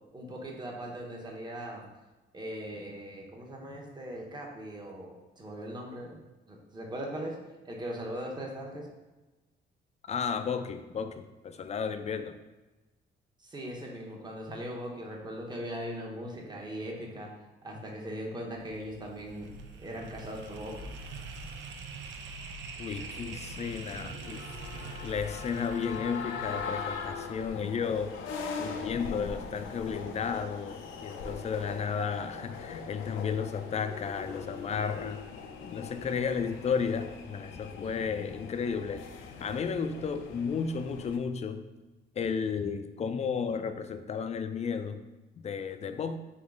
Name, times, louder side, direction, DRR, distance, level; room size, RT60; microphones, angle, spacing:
voice 1, 0.1-1.9 2.3-6.2 6.5-7.4 7.6-8.9 13.4-17.3 17.6-19.5 19.8-20.9, equal, 20° right, -1 dB, 0.9 m, -39 dB
voice 2, 10.1-12.4 22.8-24.4 24.8-28.1 28.6-35.2 35.6-41.7 42.2-45.0 45.4-46.2, left 6 dB, 35° left, 9 dB, 0.4 m, -33 dB
sound 1, 18.5-27.6, right 3 dB, 70° right, 0.5 m, -44 dB
sound 2, 22.9-41.2, left 5 dB, 90° left, 0.5 m, -41 dB
3.7 x 3.0 x 3.6 m, 1.1 s
cardioid pair, 90°, 20 cm